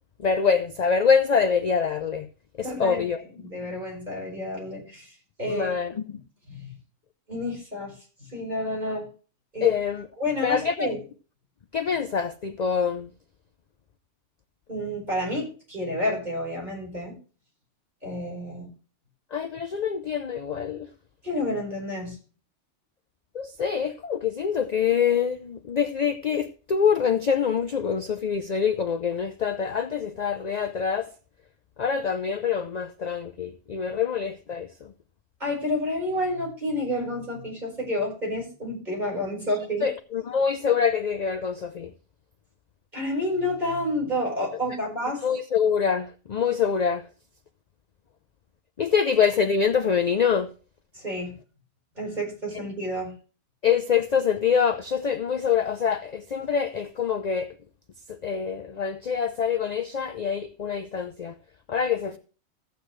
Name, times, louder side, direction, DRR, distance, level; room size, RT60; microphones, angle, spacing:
voice 1, 0.2-2.3 2.6-3.2 5.5-6.0 9.6-10.0 10.4-10.9 11.7-13.1 19.3-20.9 23.3-31.1 31.8-34.9 39.8-41.9 45.2-47.1 48.8-50.5 53.6-57.5 58.1-61.3 61.7-62.2, left 6 dB, 50° left, 0.5 m, -25 dB
voice 2, 2.6-3.1 3.4-5.1 5.4-6.0 6.5-6.7 7.3-7.9 8.3-9.1 9.5-9.7 10.2-11.0 14.7-17.2 18.0-18.7 21.2-22.2 35.4-39.9 42.9-45.2 50.9-51.4 52.0-53.1, left 1 dB, 35° right, 4.8 m, -29 dB
14.5 x 8.1 x 3.2 m
omnidirectional pair, 1.2 m